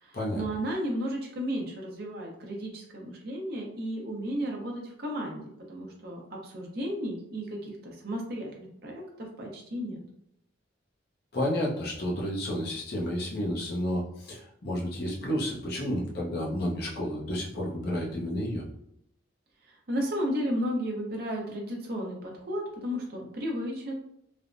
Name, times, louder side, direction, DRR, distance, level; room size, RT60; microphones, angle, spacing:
voice 1, 0.0-10.0 19.9-23.9, equal, 55° right, -1 dB, 0.7 m, -33 dB
voice 2, 11.3-18.6, equal, 55° left, -3 dB, 0.7 m, -31 dB
3.3 x 2.1 x 2.5 m, 0.74 s
head